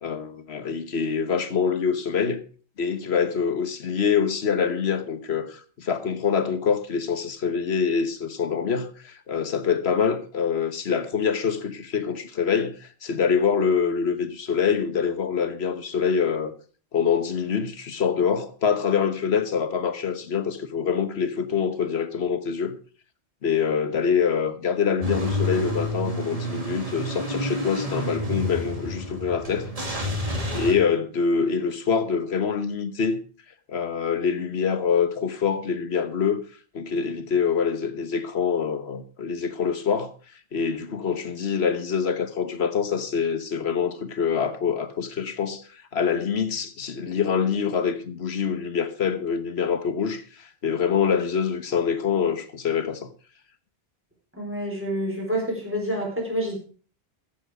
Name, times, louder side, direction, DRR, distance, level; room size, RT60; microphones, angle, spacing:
voice 1, 0.0-2.4 2.8-16.5 16.9-22.8 23.4-29.7 30.1-30.2 30.5-33.2 33.7-36.4 36.7-40.1 40.5-45.6 45.9-53.1, left 6 dB, 80° left, 1.4 m, -25 dB
Car / Engine starting / Idling, 25.0-30.7, equal, 35° right, 2.3 m, -29 dB
voice 2, 54.4-56.6, equal, 10° right, 4.5 m, -28 dB
14.0 x 7.6 x 4.9 m
omnidirectional pair, 1.1 m